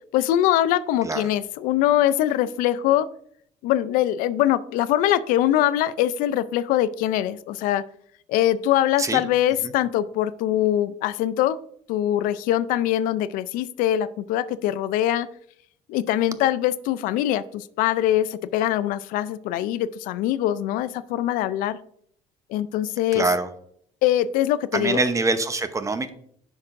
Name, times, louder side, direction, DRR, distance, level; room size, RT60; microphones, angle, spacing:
voice 1, 0.1-3.1 3.6-7.8 8.3-11.6 11.9-15.3 15.9-21.8 22.5-23.3 24.0-25.0, left 12 dB, 85° left, 16 dB, 0.4 m, -23 dB
voice 2, 23.1-23.5 24.7-26.1, right 3 dB, 20° right, 10 dB, 0.8 m, -24 dB
9.6 x 5.9 x 2.5 m, 0.65 s
cardioid pair, 95°, 14 cm